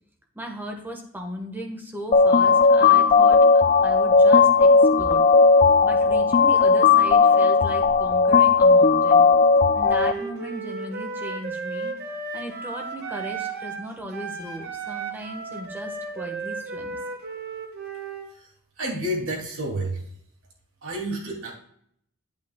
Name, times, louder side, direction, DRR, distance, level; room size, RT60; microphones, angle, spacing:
voice 1, 0.3-3.4 3.8-4.7 5.0-5.2 5.8-9.3 9.7-11.9 12.3-17.0, equal, 10° right, 2 dB, 1.4 m, -36 dB
sound 1, 2.1-10.1, left 4 dB, 35° left, 0.3 m, -16 dB
Wind instrument woodwind instrument, 9.8-13.9 14.1-18.3, right 4 dB, 50° right, 1.3 m, -34 dB
voice 2, 18.8-20.0 20.8-21.5, right 1 dB, 70° right, -2 dB, 2.7 m, -29 dB
9.1 x 8.7 x 2.3 m, 0.68 s
head